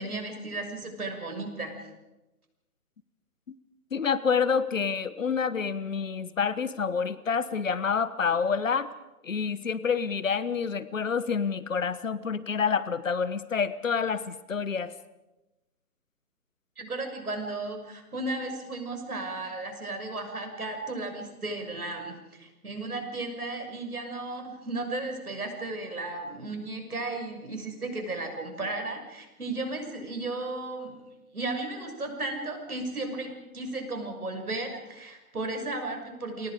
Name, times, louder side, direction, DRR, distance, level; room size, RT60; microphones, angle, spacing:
voice 1, 0.0-1.9 16.8-31.1 31.3-36.5, right 2 dB, 70° right, 4 dB, 6.5 m, -35 dB
voice 2, 3.9-8.9 9.2-14.9, left 6 dB, 55° left, 16 dB, 1.3 m, -28 dB
29.0 x 24.0 x 5.1 m, 1.0 s
figure-of-eight pair, 140°, 46 cm